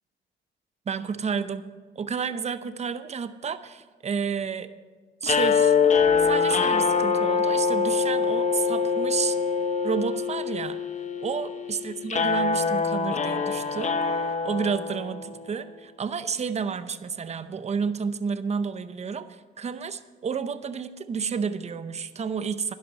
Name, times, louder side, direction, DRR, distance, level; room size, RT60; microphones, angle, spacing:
voice 1, 0.9-1.7 2.0-4.7 5.2-5.8 6.2-9.4 9.8-10.8 11.2-22.7, right 6 dB, 35° right, 12 dB, 0.7 m, -31 dB
sound 1, 5.2-15.4, left 5 dB, 35° left, 1.0 m, -24 dB
11.5 x 11.0 x 5.4 m, 1.4 s
cardioid pair, 90°, 20 cm